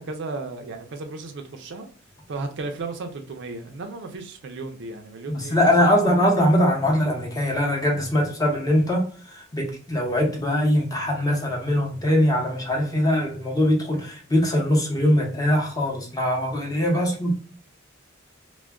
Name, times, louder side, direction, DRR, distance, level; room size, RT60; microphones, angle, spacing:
voice 1, 0.0-1.9 2.3-6.1 16.9-17.0, right 3 dB, 60° right, 0.5 m, -34 dB
voice 2, 5.3-17.3, equal, 20° left, 0.7 m, -22 dB
2.2 x 2.1 x 3.4 m
head